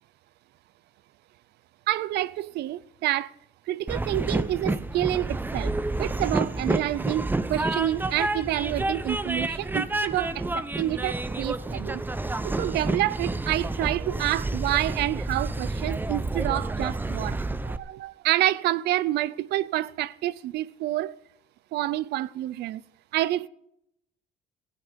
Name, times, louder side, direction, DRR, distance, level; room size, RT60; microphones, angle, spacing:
voice 1, 1.9-3.3 3.7-5.7 6.0-7.2 7.5-12.0 12.4-17.4 17.6-21.1 21.7-22.8 23.1-23.5, right 14 dB, 75° right, 0.7 m, -28 dB
Train, 3.9-17.8, right 2 dB, 10° right, 0.9 m, -29 dB
16.5 x 14.5 x 5.2 m
cardioid pair, 110°, 17 cm